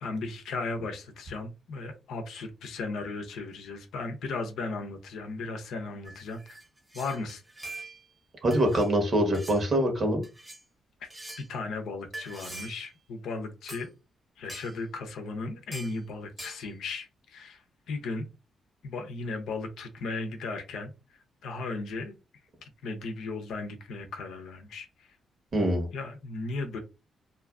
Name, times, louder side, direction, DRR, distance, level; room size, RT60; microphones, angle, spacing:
voice 1, 0.0-6.6 6.9-7.4 11.0-11.1 11.4-13.9 14.4-18.3 18.8-20.9 21.4-22.1 22.6-25.2 25.9-26.8, left 3 dB, 80° left, 5 dB, 0.6 m, -36 dB
sound 1, 6.0-8.2 8.5-8.9 9.3-9.6 10.2-10.6 11.1-11.5 12.1-12.9 13.7-13.9 14.5-14.8 15.7-16.0 16.4-16.6, right 2 dB, 20° right, 0.9 m, -44 dB
voice 2, 8.4-10.2 25.5-25.9, right 1 dB, 55° right, 3 dB, 1.2 m, -24 dB
2.6 x 2.4 x 2.3 m, 0.28 s
supercardioid pair, 55°, 0 cm